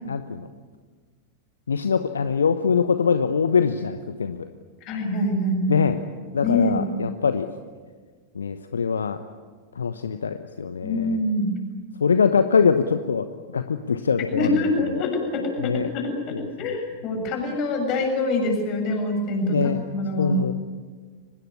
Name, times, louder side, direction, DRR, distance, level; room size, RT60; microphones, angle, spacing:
voice 1, 0.1-0.5 1.7-4.5 5.7-6.0 6.3-7.5 8.3-9.2 9.8-11.2 12.0-14.6 14.9-15.0 15.6-15.9 19.5-19.8 20.2-20.5, left 6 dB, 70° left, 10 dB, 1.0 m, -23 dB
voice 2, 4.9-5.6 6.4-6.8 10.8-11.5 14.3-20.4, left 2 dB, 40° left, 3 dB, 7.4 m, -25 dB
24.5 x 20.5 x 9.8 m, 1.5 s
figure-of-eight pair, 90°, 0 cm